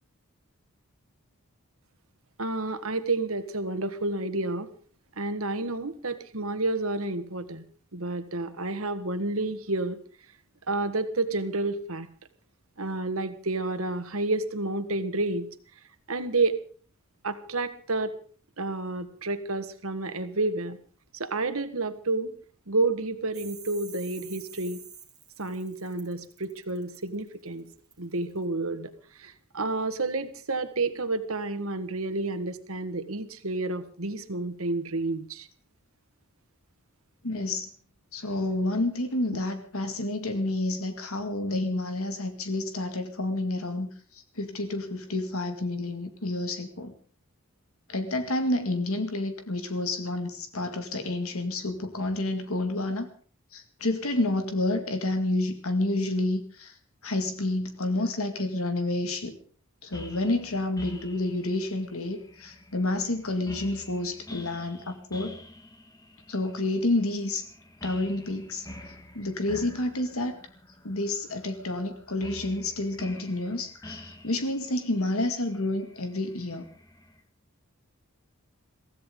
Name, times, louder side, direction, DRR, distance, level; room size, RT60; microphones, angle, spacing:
voice 1, 2.4-4.7 5.2-7.6 7.9-10.0 10.7-12.1 12.8-15.5 16.1-16.6 17.2-18.1 18.6-20.8 21.1-22.3 22.7-24.8 25.4-27.6 28.0-28.9 29.2-35.5, right 2 dB, 75° right, 10 dB, 1.7 m, -30 dB
sound 1, 23.3-28.4, right 7 dB, 20° right, 2.5 m, -48 dB
voice 2, 37.2-37.7 38.1-46.9 47.9-53.1 53.5-56.7 57.0-59.4 59.8-65.4 66.3-67.4 67.8-70.4 70.8-76.7, left 2 dB, 75° left, 7 dB, 2.2 m, -29 dB
sound 2, 59.9-77.2, left 1 dB, 15° left, 1.6 m, -47 dB
23.5 x 15.5 x 3.9 m, 0.43 s
head